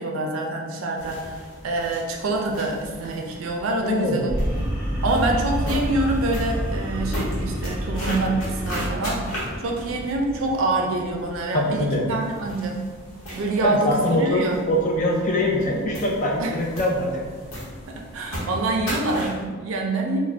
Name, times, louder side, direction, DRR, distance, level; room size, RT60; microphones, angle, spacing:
voice 1, 0.0-4.4 5.0-12.8 13.3-14.6 16.4-16.6 17.9-20.2, right 2 dB, 80° right, 1 dB, 0.4 m, -26 dB
sound 1, 1.0-19.5, equal, 90° left, 0.9 m, -36 dB
voice 2, 3.8-4.4 11.5-12.0 13.7-17.2, left 1 dB, 40° left, -1 dB, 0.4 m, -23 dB
sound 2, 4.3-10.5, equal, 10° right, 0.8 m, -28 dB
2.4 x 2.1 x 3.2 m, 1.5 s
head